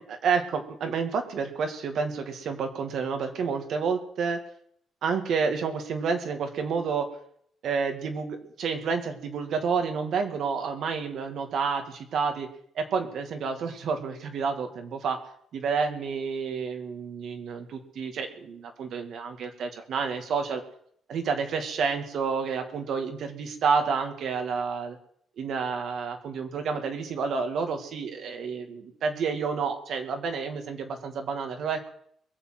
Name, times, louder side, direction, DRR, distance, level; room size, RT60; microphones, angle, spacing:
voice 1, 0.1-4.4 5.0-7.1 7.6-12.5 12.7-15.2 15.5-20.6 21.1-24.9 25.4-31.9, right 5 dB, 70° right, 5 dB, 2.3 m, -29 dB
21.5 x 7.2 x 7.9 m, 0.67 s
cardioid pair, 90°, 0 cm